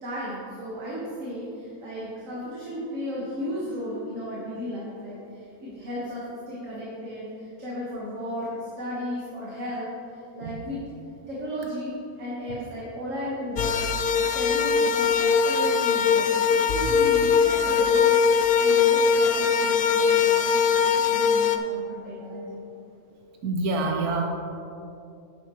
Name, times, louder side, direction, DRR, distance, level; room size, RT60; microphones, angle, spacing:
voice 1, 0.0-10.8 11.3-13.8 14.1-22.7, equal, 60° right, -7 dB, 1.8 m, -35 dB
sound 1, 13.6-21.6, left 6 dB, 70° left, 0.5 m, -21 dB
voice 2, 23.4-24.3, right 3 dB, 85° right, 1 dB, 1.3 m, -26 dB
11.0 x 8.3 x 3.1 m, 2.7 s
omnidirectional pair, 1.5 m